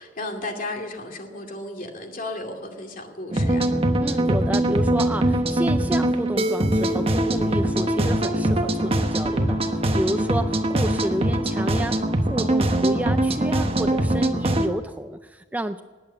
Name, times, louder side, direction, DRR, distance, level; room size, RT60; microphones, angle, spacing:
voice 1, 0.0-3.6, left 2 dB, 50° left, 3 dB, 2.4 m, -34 dB
sound 1, 3.3-14.7, right 1 dB, 30° right, 1.1 m, -22 dB
voice 2, 4.0-15.8, right 1 dB, 10° right, 9 dB, 0.4 m, -30 dB
19.5 x 8.8 x 7.3 m, 1.4 s
head